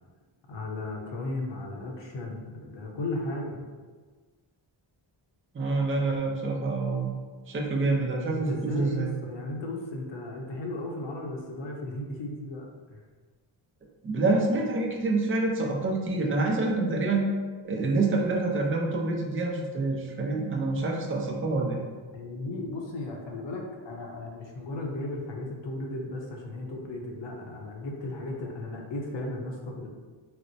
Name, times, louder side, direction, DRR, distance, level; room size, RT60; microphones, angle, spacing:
voice 1, 0.5-3.6 8.3-13.0 22.1-29.9, left 2 dB, 60° left, 0 dB, 0.7 m, -35 dB
voice 2, 5.5-7.1 7.5-9.1 14.0-17.3 17.6-21.8, right 3 dB, 25° right, -1 dB, 0.5 m, -27 dB
4.2 x 2.0 x 2.6 m, 1.4 s
wide cardioid pair, 95°, 48 cm